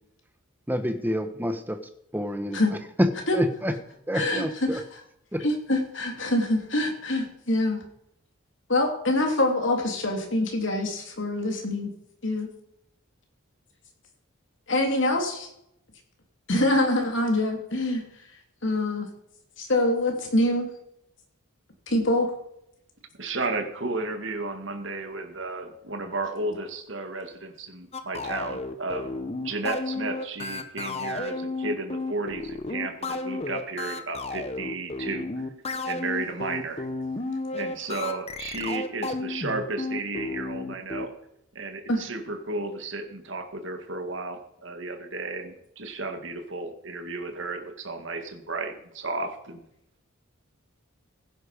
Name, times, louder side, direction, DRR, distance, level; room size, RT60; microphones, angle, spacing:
voice 1, 0.7-1.8 2.1-2.6 3.0-3.1 3.3-3.7 4.1-4.8 5.3-5.4, equal, 10° right, 8 dB, 1.1 m, -27 dB
voice 2, 4.1-4.8 5.4-7.8 8.7-11.9 12.2-12.5 14.7-15.5 16.5-18.0 18.6-19.1 19.6-20.7 21.9-22.3 41.9-42.0, left 1 dB, 60° left, 3 dB, 3.2 m, -25 dB
voice 3, 23.2-29.1 29.4-35.3 35.8-36.9 37.5-41.1 41.5-49.6, right 3 dB, 60° right, 6 dB, 2.1 m, -33 dB
sound 1, 27.9-41.1, left 3 dB, 30° left, 1.0 m, -32 dB
16.5 x 10.0 x 5.1 m, 0.76 s
head